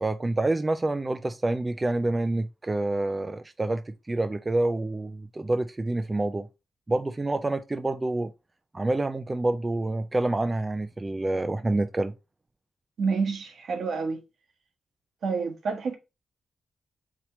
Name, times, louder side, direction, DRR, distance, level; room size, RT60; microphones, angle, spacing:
voice 1, 0.0-6.5 6.9-8.3 8.7-12.1, right 2 dB, 25° right, 0.4 m, -27 dB
voice 2, 13.0-14.2 15.2-16.0, right 4 dB, 70° right, 1.2 m, -28 dB
4.2 x 2.9 x 4.3 m
cardioid pair, 85°, 0 cm